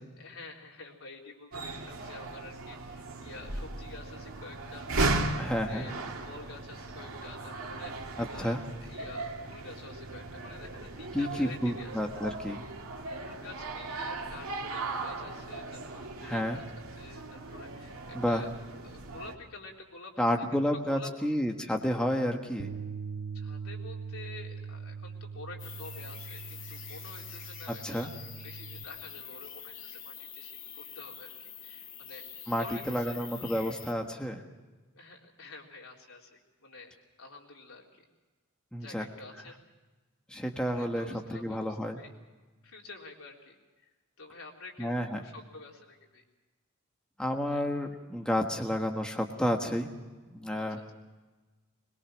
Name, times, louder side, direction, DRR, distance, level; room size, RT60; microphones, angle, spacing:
voice 1, 0.2-4.9 5.2-8.6 8.8-11.9 13.1-16.6 17.0-18.5 18.8-20.3 20.9-21.3 23.3-28.1 28.4-32.3 32.6-33.2 34.9-38.0 38.7-39.6 40.6-42.1 42.6-43.6 43.8-43.9 44.2-46.2 47.5-47.7 50.6-50.9, left 3 dB, 90° left, 0 dB, 3.9 m, -48 dB
sound 1, 1.5-19.4, right 2 dB, 90° right, 2.4 m, -37 dB
voice 2, 5.4-5.8 8.2-8.6 11.1-12.6 16.2-16.6 18.1-18.4 20.2-22.7 27.8-28.1 32.5-34.4 38.7-39.0 40.3-42.0 44.8-45.2 47.2-49.9 50.3-50.9, equal, 5° left, 2 dB, 1.4 m, -30 dB
Bass guitar, 22.6-28.8, right 6 dB, 65° right, 0.7 m, -41 dB
sound 2, 25.6-33.9, left 8 dB, 65° left, 2.8 m, -46 dB
22.0 x 21.5 x 6.3 m, 1.3 s
head